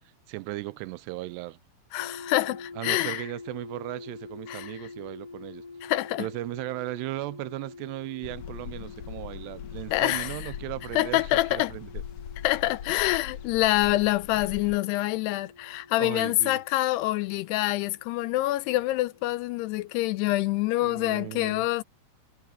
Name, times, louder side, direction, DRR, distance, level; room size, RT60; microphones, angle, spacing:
voice 1, 0.3-1.6 2.8-5.6 6.2-12.0 14.4-14.5 16.0-16.6 20.8-21.7, right 19 dB, 85° right, 2.6 m, -37 dB
voice 2, 1.9-3.2 4.5-4.9 5.8-6.3 9.9-10.5 10.9-11.7 12.4-21.8, left 17 dB, 85° left, 2.6 m, -26 dB
sound 1, 2.0-19.9, left 4 dB, 45° left, 2.3 m, -47 dB
sound 2, 8.2-14.8, left 9 dB, 65° left, 2.0 m, -41 dB
omnidirectional pair, 4.9 m